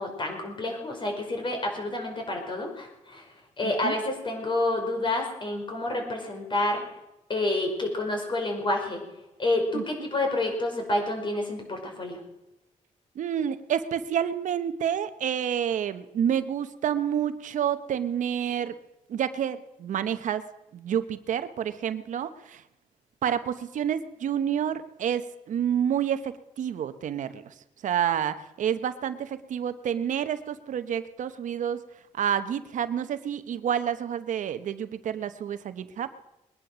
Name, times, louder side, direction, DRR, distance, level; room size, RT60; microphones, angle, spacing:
voice 1, 0.0-3.2 3.6-6.8 7.3-9.0 9.4-12.2, left 2 dB, 40° left, 3 dB, 5.2 m, -29 dB
voice 2, 3.6-3.9 9.7-9.8 13.1-18.8 19.1-20.4 20.7-22.6 23.2-27.5 27.8-31.8 32.1-36.3, right 9 dB, 75° right, 11 dB, 1.0 m, -29 dB
21.0 x 10.5 x 6.2 m, 0.93 s
cardioid pair, 95°, 13 cm